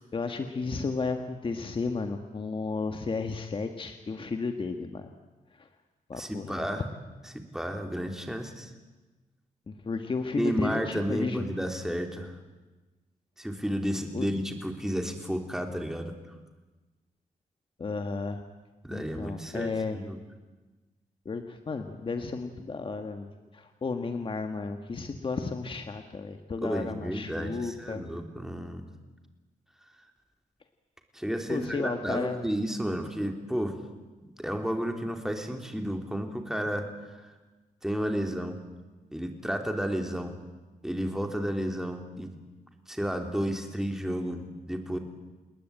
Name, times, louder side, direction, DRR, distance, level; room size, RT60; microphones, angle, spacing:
voice 1, 0.1-5.1 5.6-5.7 6.1-6.6 9.7-11.5 14.1-14.3 17.8-18.4 18.9-20.0 21.3-28.0 31.5-32.4, left 4 dB, 40° left, 6 dB, 1.7 m, -33 dB
voice 2, 6.1-6.9 7.2-8.7 10.3-12.4 13.4-16.1 18.8-20.2 26.6-28.9 31.1-33.8 34.2-37.2 37.8-38.6 39.1-40.4 40.8-42.3 42.9-45.0, equal, 5° right, 4 dB, 3.3 m, -32 dB
28.5 x 20.5 x 8.9 m, 1.2 s
wide cardioid pair, 135°, 14 cm